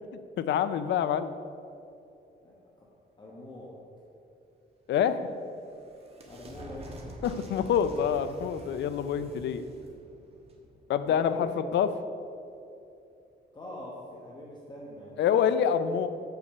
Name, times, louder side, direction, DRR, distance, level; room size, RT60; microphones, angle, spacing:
voice 1, 0.4-1.3 4.9-5.2 7.2-9.6 10.9-11.9 15.2-16.1, left 8 dB, 85° left, 12 dB, 0.5 m, -26 dB
voice 2, 2.4-2.9 3.2-3.8 5.6-5.7 6.2-6.9 11.1-11.5 13.5-15.2, left 1 dB, 25° left, -4 dB, 1.1 m, -43 dB
sound 1, 5.1-11.5, right 1 dB, 35° right, 1.2 m, -48 dB
6.6 x 5.7 x 6.7 m, 2.7 s
wide cardioid pair, 150°, 18 cm